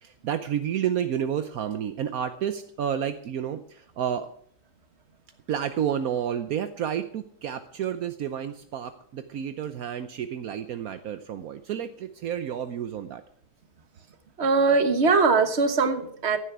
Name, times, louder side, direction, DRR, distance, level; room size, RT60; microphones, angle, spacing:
voice 1, 0.0-4.3 5.5-13.2, right 9 dB, 65° right, 9 dB, 0.9 m, -30 dB
voice 2, 14.4-16.4, right 4 dB, 35° right, 8 dB, 1.3 m, -21 dB
16.0 x 11.5 x 4.8 m, 0.62 s
omnidirectional pair, 2.4 m